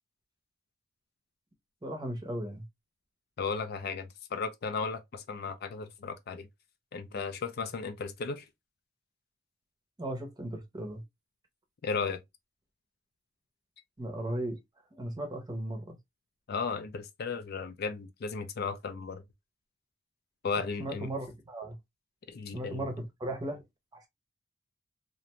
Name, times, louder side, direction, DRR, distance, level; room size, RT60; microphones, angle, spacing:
voice 1, 1.8-2.6 10.0-11.0 14.0-14.6 14.9-16.0 20.8-21.8 22.5-23.6 23.9-24.1, right 1 dB, 20° right, 0.6 m, -36 dB
voice 2, 3.4-6.5 6.9-8.5 11.8-12.2 16.5-19.2 20.4-21.1 22.3-22.9, left 5 dB, 50° left, 0.4 m, -35 dB
2.5 x 2.2 x 2.8 m
head